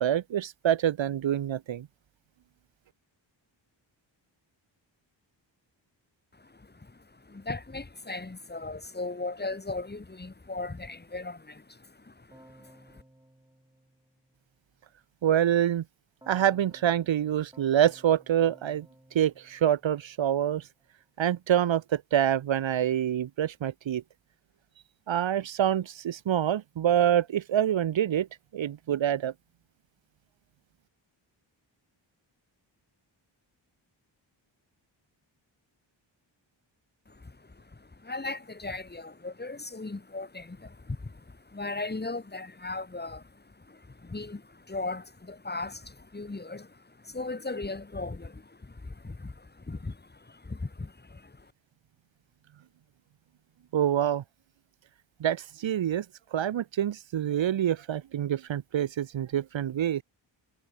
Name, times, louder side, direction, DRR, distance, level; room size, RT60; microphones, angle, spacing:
voice 1, 0.0-1.9 15.2-15.8 16.3-20.7 21.2-24.0 25.1-28.3 28.5-29.3 53.7-54.2 55.2-56.0 56.3-60.0, right 10 dB, 70° right, 1.2 m, -26 dB
voice 2, 6.3-13.0 37.1-51.5, left 3 dB, 20° left, 3.2 m, -38 dB
Keyboard (musical), 12.3-14.6 16.2-20.5, right 1 dB, 10° right, 7.3 m, -57 dB
wide cardioid pair, 115°, 47 cm